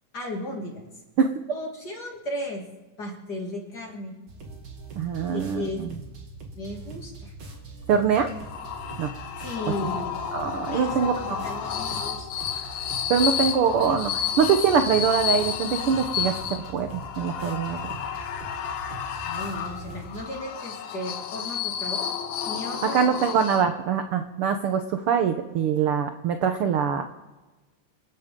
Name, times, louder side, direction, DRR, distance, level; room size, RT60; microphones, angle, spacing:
voice 1, 0.1-0.9 1.5-2.7 3.0-4.2 5.3-5.8 6.6-7.3 9.4-10.3 10.7-12.7 19.2-22.1 22.4-23.1, left 1 dB, 35° left, 0 dB, 2.7 m, -35 dB
sound 1, 4.3-20.2, right 2 dB, 45° right, 2.6 m, -42 dB
voice 2, 4.9-6.0 7.9-8.3 9.0-9.1 10.3-11.4 13.1-17.9 22.9-27.0, right 7 dB, 70° right, 6 dB, 1.3 m, -23 dB
sound 2, 8.3-24.0, left 8 dB, 70° left, 2.1 m, -31 dB
28.0 x 11.5 x 3.7 m, 1.2 s
omnidirectional pair, 3.6 m